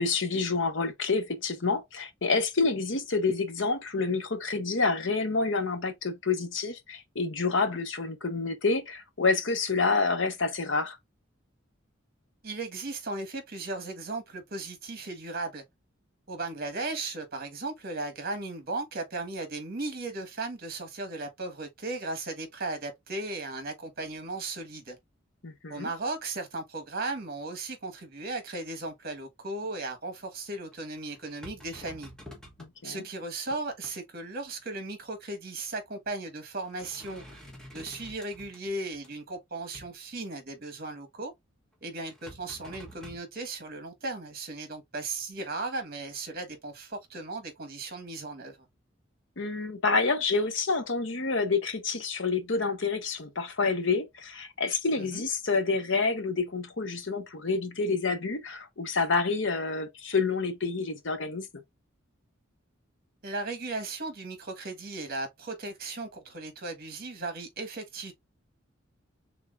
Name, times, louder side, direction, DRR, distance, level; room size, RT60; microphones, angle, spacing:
voice 1, 0.0-11.0 25.4-25.9 32.6-33.0 49.4-61.6, left 4 dB, 70° left, 1.1 m, -28 dB
voice 2, 12.4-15.6 16.3-25.0 25.7-32.1 32.8-37.4 37.7-41.3 41.8-48.6 55.0-55.2 63.2-68.1, right 2 dB, 50° right, 1.4 m, -36 dB
sound 1, 30.5-32.7 33.2-34.0 35.5-35.6 36.1-36.3 36.6-39.1 39.7-39.9 42.0-43.2, equal, 5° left, 1.1 m, -49 dB
4.6 x 3.7 x 2.5 m
head